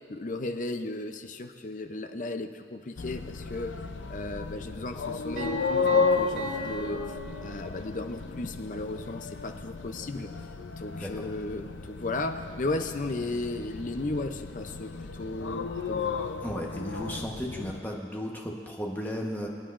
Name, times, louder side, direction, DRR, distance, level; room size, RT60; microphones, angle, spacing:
voice 1, 0.0-3.7 4.1-7.2 7.4-10.3 10.8-16.2, left 2 dB, 45° left, 7 dB, 0.6 m, -35 dB
sound 1, 3.0-17.8, left 4 dB, 90° left, 0.6 m, -33 dB
Piano, 5.4-8.1, left 1 dB, 65° right, 2.4 m, -38 dB
voice 2, 16.4-19.5, equal, 10° left, -1 dB, 1.1 m, -35 dB
26.0 x 9.1 x 2.5 m, 2.2 s
head